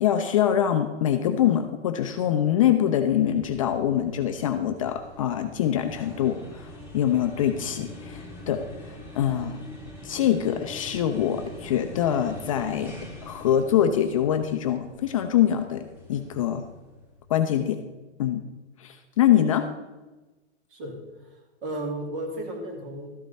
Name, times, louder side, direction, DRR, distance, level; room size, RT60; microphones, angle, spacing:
voice 1, 0.0-8.6 9.1-9.6 10.0-12.9 13.2-16.7 17.3-17.8 18.2-18.4 18.8-19.7, left 10 dB, 30° left, 7 dB, 0.4 m, -24 dB
sound 1, 3.1-17.2, left 1 dB, 5° right, 1.9 m, -44 dB
voice 2, 20.7-23.2, right 1 dB, 50° right, 2 dB, 2.7 m, -34 dB
13.0 x 8.1 x 4.1 m, 1.2 s
hypercardioid pair, 155°, 34 cm